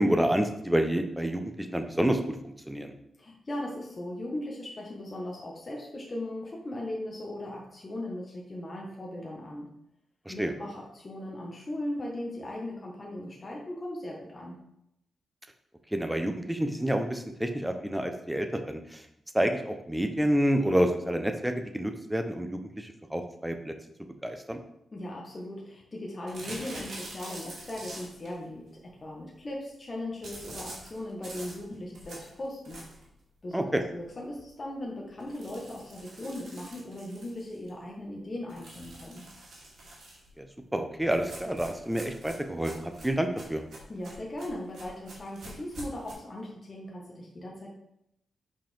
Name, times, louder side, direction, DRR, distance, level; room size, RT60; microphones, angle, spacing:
voice 1, 0.0-1.4 1.7-2.2 2.4-2.9 10.3-10.5 15.9-19.0 19.3-23.7 24.2-24.6 33.5-33.8 40.4-40.5 40.7-43.6, right 1 dB, 5° right, 6 dB, 0.8 m, -28 dB
voice 2, 3.2-9.7 10.3-14.6 24.9-32.8 33.4-39.2 43.9-47.7, left 1 dB, 35° left, -2 dB, 1.4 m, -38 dB
sound 1, 26.3-28.3 30.2-33.1 33.6-33.7 34.0-34.1 34.4-34.5 35.2-37.7 38.5-40.3 41.1-46.1, right 1 dB, 75° right, 2.4 m, -45 dB
5.5 x 5.3 x 4.4 m, 0.79 s
cardioid pair, 90°, 0 cm